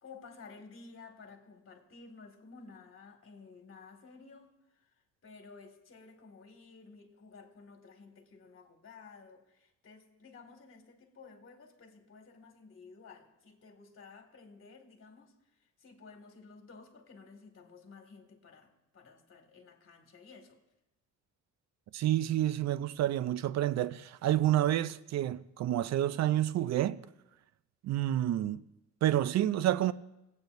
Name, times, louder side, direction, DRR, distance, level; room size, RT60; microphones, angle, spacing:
voice 1, 0.0-4.8 5.2-15.3 15.8-20.6, left 4 dB, 45° left, 2.0 m, -54 dB
voice 2, 21.9-27.0 27.8-28.6 29.0-29.9, right 13 dB, 60° right, 0.5 m, -29 dB
22.5 x 8.6 x 2.6 m
cardioid pair, 90°, 30 cm